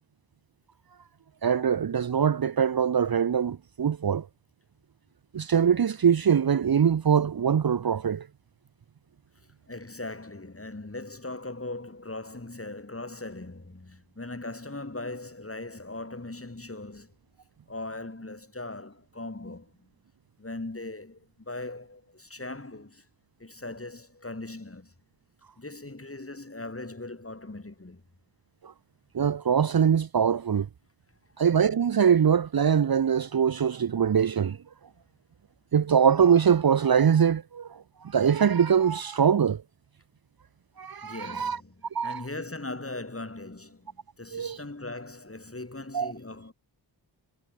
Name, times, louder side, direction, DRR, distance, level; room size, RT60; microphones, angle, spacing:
voice 1, 1.4-4.3 5.3-8.3 29.1-30.7 31.4-34.6 35.7-37.7 38.1-39.6 40.8-41.6 41.9-42.2 44.3-44.6 45.9-46.1, right 7 dB, 50° right, 0.8 m, -23 dB
voice 2, 9.7-17.1 17.7-19.9 20.4-23.0 23.4-24.9 25.6-28.0 41.0-46.5, left 2 dB, 30° left, 7.8 m, -39 dB
cardioid pair, 55°, 45 cm